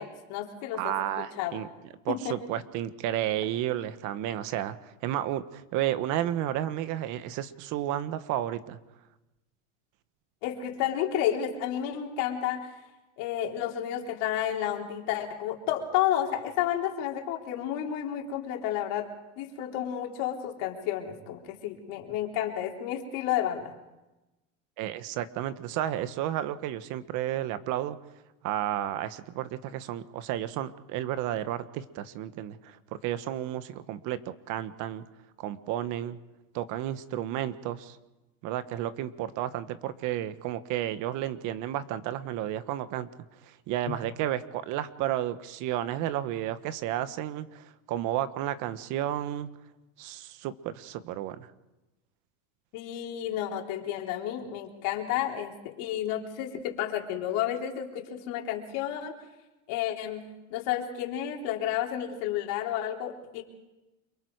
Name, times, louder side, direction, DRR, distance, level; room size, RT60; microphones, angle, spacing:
voice 1, 0.0-1.6 2.1-2.4 10.4-12.7 13.2-19.1 19.4-23.7 52.7-59.1 59.7-60.2 60.5-63.4, left 11 dB, 60° left, 1 dB, 3.9 m, -31 dB
voice 2, 0.7-1.7 2.0-4.8 5.0-8.8 24.8-28.0 28.4-32.8 33.0-35.0 35.4-36.2 36.5-38.0 38.4-43.1 43.5-49.5 50.0-51.5, right 12 dB, 55° right, 12 dB, 1.4 m, -32 dB
29.5 x 23.5 x 4.8 m, 1.0 s
supercardioid pair, 115°, 37 cm